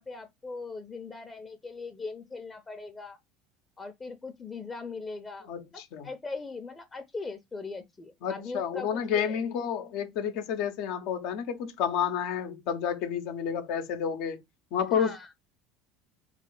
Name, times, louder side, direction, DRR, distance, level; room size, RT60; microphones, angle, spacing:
voice 1, 0.0-3.2 3.8-9.4 14.9-15.3, left 4 dB, 25° left, 0.7 m, -40 dB
voice 2, 5.5-6.1 8.2-14.4 14.7-15.3, left 8 dB, 70° left, 0.8 m, -30 dB
3.3 x 3.1 x 3.7 m
hypercardioid pair, 75°, 0 cm